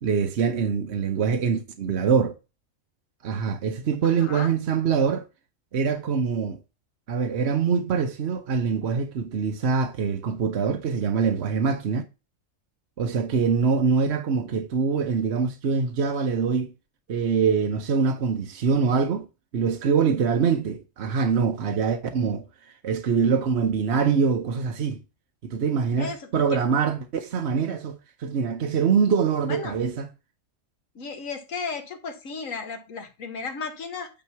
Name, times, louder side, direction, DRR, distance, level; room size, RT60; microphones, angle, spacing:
voice 1, 0.0-2.4 3.2-5.2 5.7-6.6 7.1-12.0 13.0-16.7 17.1-19.3 19.5-22.4 22.8-25.0 25.4-30.1, right 6 dB, 60° right, 1.0 m, -24 dB
voice 2, 4.0-4.5 26.0-26.6 29.5-29.8 31.0-34.1, left 4 dB, 90° left, 1.7 m, -34 dB
9.0 x 3.1 x 5.7 m
omnidirectional pair, 1.3 m